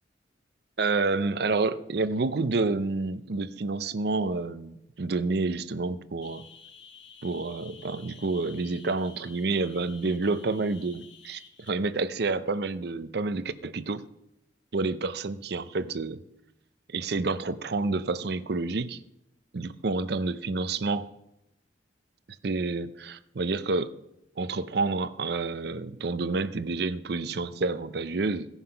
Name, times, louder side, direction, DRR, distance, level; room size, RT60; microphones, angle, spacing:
voice 1, 0.8-6.4 7.2-11.4 11.7-14.0 14.7-16.2 16.9-19.0 19.5-21.1 22.4-24.0 24.4-28.5, right 3 dB, 60° right, 13 dB, 0.6 m, -29 dB
sound 1, 6.2-11.7, left 6 dB, 90° left, 1.2 m, -51 dB
16.5 x 5.7 x 5.7 m, 0.84 s
head